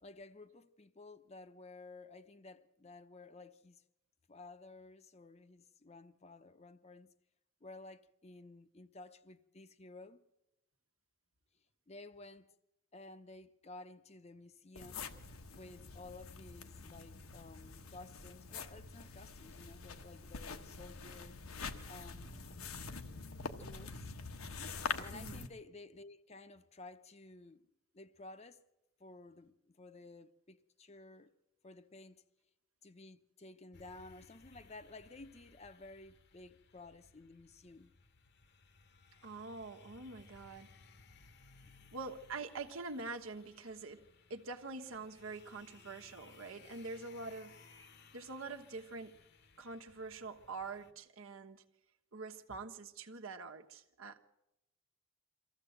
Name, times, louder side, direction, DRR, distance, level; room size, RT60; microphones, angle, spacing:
voice 1, 0.0-3.8 4.3-7.1 7.6-10.2 11.9-12.5 12.9-15.1 15.5-21.4 21.8-22.5 23.6-24.1 25.0-27.7 27.9-28.6 29.0-31.3 31.6-32.2 32.8-37.9 41.6-41.9, left 2 dB, 30° left, 0.7 m, -54 dB
sound 1, 14.7-25.5, left 4 dB, 85° left, 1.2 m, -45 dB
voice 2, 25.1-25.4 39.2-40.7 41.9-47.6 48.1-49.2 49.6-51.6 52.1-54.2, right 3 dB, 75° right, 1.3 m, -45 dB
sound 2, 33.7-50.9, left 4 dB, 50° left, 1.0 m, -62 dB
23.5 x 14.5 x 7.9 m
head